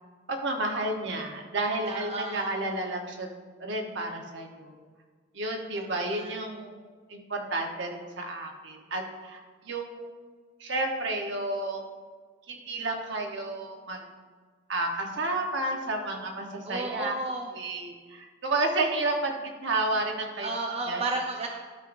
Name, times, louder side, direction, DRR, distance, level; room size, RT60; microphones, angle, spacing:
voice 1, 0.3-3.3 3.6-4.7 5.3-6.8 7.1-9.4 9.6-10.1 10.6-11.8 12.5-14.0 14.7-17.1 17.5-20.5 20.9-21.0, right 2 dB, 65° right, 2 dB, 1.1 m, -31 dB
voice 2, 1.8-2.5 5.7-6.3 16.6-17.5 20.4-21.5, right 2 dB, 35° right, 0 dB, 0.7 m, -33 dB
12.5 x 5.6 x 2.6 m, 1.5 s
head